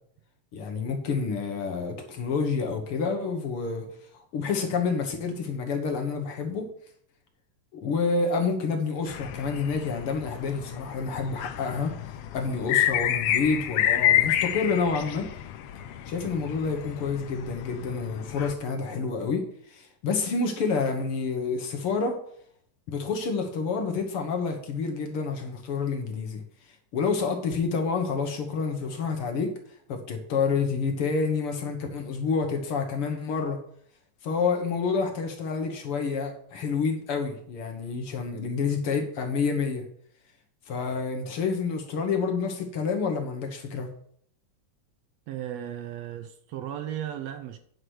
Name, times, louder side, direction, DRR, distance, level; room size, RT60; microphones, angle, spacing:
voice 1, 0.5-3.9 4.1-6.7 7.7-11.9 12.3-15.3 16.1-22.2 22.9-29.5 29.9-33.6 34.2-39.8 40.7-43.9, left 5 dB, 55° left, 1.7 m, -28 dB
sound 1, 9.1-18.5, left 11 dB, 85° left, 1.3 m, -29 dB
voice 2, 45.3-47.6, right 11 dB, 75° right, 1.6 m, -35 dB
9.5 x 4.8 x 6.3 m
omnidirectional pair, 3.5 m